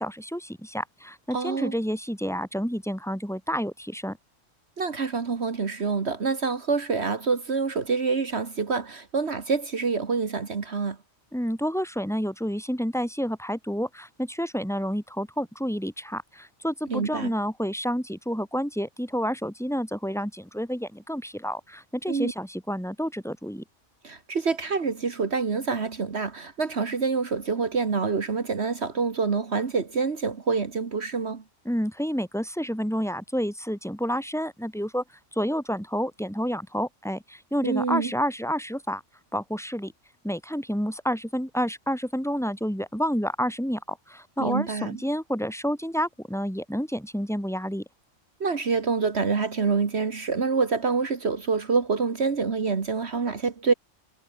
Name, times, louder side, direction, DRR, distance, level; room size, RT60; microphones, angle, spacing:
voice 1, 0.0-4.2 11.3-23.6 31.6-35.0 35.3-39.0 39.3-39.9 40.2-47.8, equal, ahead, 8.0 m, -29 dB
voice 2, 1.3-1.7 4.8-11.0 16.9-17.3 22.1-22.3 24.0-31.4 37.6-38.1 44.4-44.9 48.4-53.7, right 4 dB, 60° right, 1.8 m, -26 dB
omnidirectional pair, 1.3 m